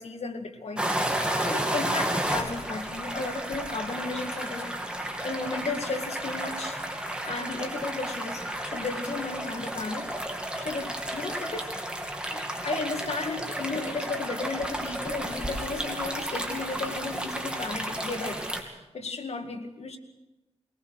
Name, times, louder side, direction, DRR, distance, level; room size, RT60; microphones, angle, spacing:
voice 1, 0.0-4.7 5.0-6.8 7.2-10.1 10.6-11.9 12.3-18.5 18.9-20.0, left 3 dB, 70° left, 4 dB, 2.1 m, -34 dB
sound 1, 0.8-18.6, right 1 dB, 10° right, 2.4 m, -32 dB
21.0 x 19.5 x 6.5 m, 1.0 s
wide cardioid pair, 110°, 11 cm